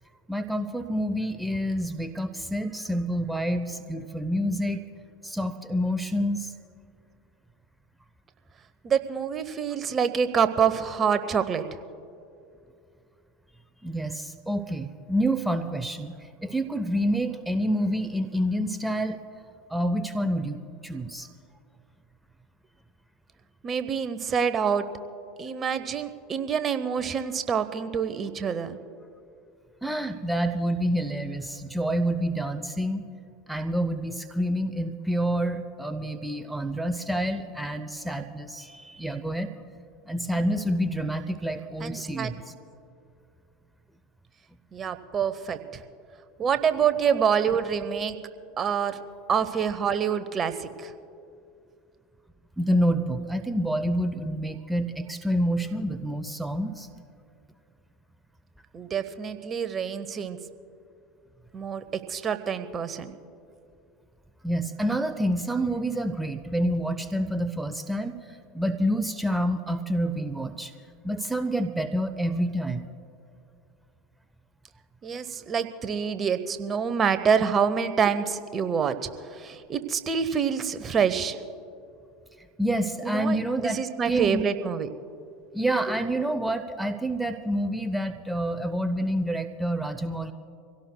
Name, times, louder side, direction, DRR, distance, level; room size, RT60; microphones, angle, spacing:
voice 1, 0.3-4.8 5.2-6.5 13.8-19.2 19.7-21.3 29.8-33.0 33.5-39.5 40.1-42.4 52.6-56.9 64.4-70.7 71.0-72.9 82.6-83.8 84.0-84.4 85.5-90.3, equal, 5° right, 9 dB, 0.7 m, -28 dB
voice 2, 8.8-11.6 23.6-24.8 25.4-28.8 41.8-42.3 44.7-45.8 46.4-48.2 48.6-49.0 49.3-50.9 58.7-60.4 61.5-61.8 62.1-63.1 75.0-81.4 83.0-84.9 85.9-86.0, right 7 dB, 35° right, 11 dB, 0.9 m, -26 dB
25.5 x 17.0 x 2.3 m, 2.5 s
hypercardioid pair, 80°, 0 cm